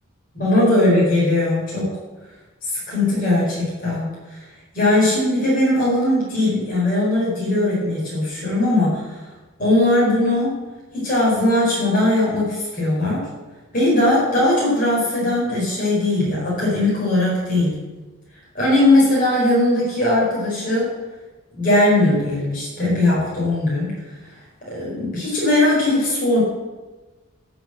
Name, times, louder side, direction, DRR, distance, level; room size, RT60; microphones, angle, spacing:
voice 1, 0.3-1.9 2.7-4.4 4.7-9.2 9.6-10.6 10.9-13.2 13.7-17.8 18.5-20.9 21.6-23.9 24.7-26.4, left 1 dB, 40° left, -6 dB, 4.9 m, -19 dB
13.5 x 6.2 x 7.9 m, 1.2 s
head